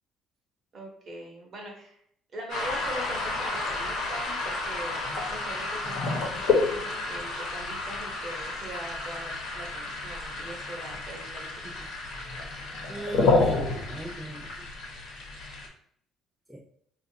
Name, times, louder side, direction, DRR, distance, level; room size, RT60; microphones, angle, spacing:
voice 1, 0.7-2.0 2.3-11.7, right 1 dB, 35° right, -1 dB, 1.0 m, -41 dB
sound 1, 2.5-15.7, left 3 dB, 65° left, 1.0 m, -30 dB
voice 2, 12.9-14.7 16.5-16.6, right 1 dB, 5° right, -3 dB, 0.4 m, -38 dB
4.4 x 2.4 x 2.8 m, 0.65 s
cardioid pair, 170°, 0 cm